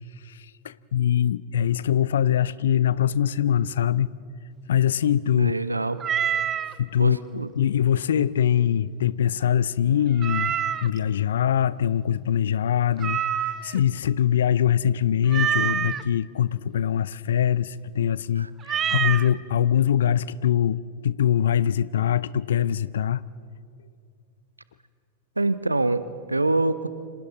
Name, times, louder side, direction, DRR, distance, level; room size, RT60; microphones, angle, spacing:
voice 1, 0.2-4.1 4.7-5.5 6.8-7.2 7.5-10.5 10.8-23.2, left 9 dB, 65° left, 0.4 m, -23 dB
voice 2, 5.3-6.0 7.0-7.5 18.4-18.5 25.4-26.9, right 2 dB, 85° right, 0.8 m, -25 dB
Meow, 6.0-6.7 10.2-11.0 13.0-13.8 15.3-16.0 18.6-19.3, right 9 dB, 25° right, 0.6 m, -26 dB
29.5 x 26.5 x 4.0 m
figure-of-eight pair, 90°, 0 cm